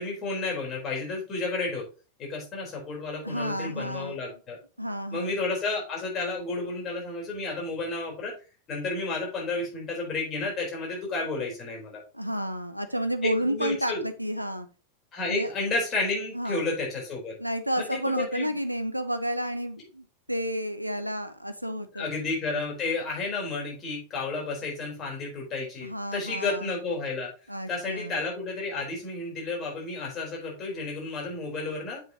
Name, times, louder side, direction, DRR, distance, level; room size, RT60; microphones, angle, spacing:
voice 1, 0.0-1.8 2.2-4.6 5.1-8.3 8.7-12.0 13.2-14.0 15.1-17.4 17.8-18.5 21.9-27.3 27.7-32.0, left 3 dB, 30° left, -2 dB, 3.9 m, -31 dB
voice 2, 3.2-4.2 4.8-5.3 12.1-14.7 15.2-15.5 16.3-16.7 17.4-22.1 25.8-26.7 27.5-28.1, equal, 90° right, 9 dB, 0.6 m, -31 dB
7.5 x 6.0 x 2.9 m, 0.34 s
figure-of-eight pair, 90°, 0 cm